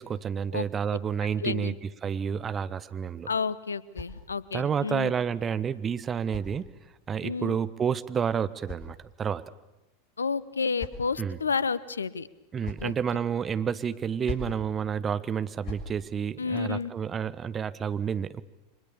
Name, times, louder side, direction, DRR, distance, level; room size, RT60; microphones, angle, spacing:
voice 1, 0.0-1.7 2.0-3.3 4.5-6.7 7.1-9.5 11.2-11.4 12.5-18.4, right 7 dB, 25° right, 14 dB, 1.2 m, -30 dB
voice 2, 1.4-1.7 3.3-5.1 7.2-7.6 10.2-12.3 12.8-12.9 16.4-16.9, left 5 dB, 80° left, 19 dB, 0.9 m, -30 dB
sound 1, 3.5-4.7 5.7-7.1 8.1-9.5 10.3-11.3 12.3-13.0 14.0-14.6 15.4-15.9, left 4 dB, 40° left, 7.0 m, -43 dB
30.0 x 25.0 x 7.1 m, 0.99 s
figure-of-eight pair, 85°, 0 cm